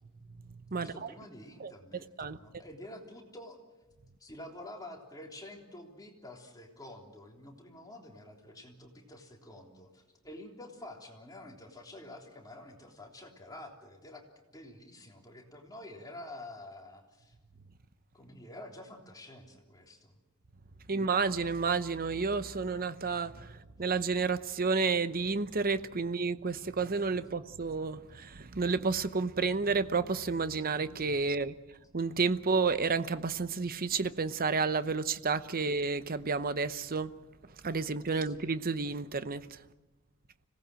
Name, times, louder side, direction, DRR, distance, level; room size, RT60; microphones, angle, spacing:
voice 1, 0.8-3.6 4.2-14.2 14.5-17.4 18.1-20.1 20.8-21.0 38.2-38.3, left 1 dB, 15° left, 3.4 m, -49 dB
voice 2, 1.6-2.6 20.9-31.5 31.9-37.1 37.6-39.6, right 4 dB, 40° right, 0.9 m, -31 dB
26.0 x 18.5 x 7.7 m
head